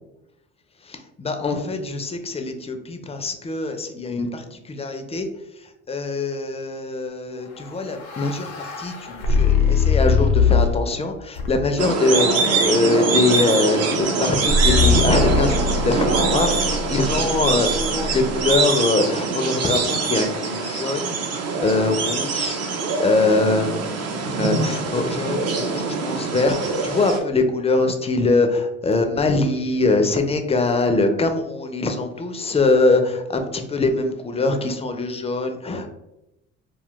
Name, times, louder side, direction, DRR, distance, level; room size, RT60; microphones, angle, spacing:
voice 1, 0.8-5.3 5.9-35.9, left 3 dB, 20° left, 6 dB, 0.4 m, -23 dB
sound 1, 7.6-10.9 11.4-11.9 14.5-18.6, left 4 dB, 80° left, 0.7 m, -22 dB
sound 2, 11.8-27.2, right 4 dB, 50° right, 0.6 m, -23 dB
2.4 x 2.2 x 3.6 m, 0.90 s
hypercardioid pair, 65°, 32 cm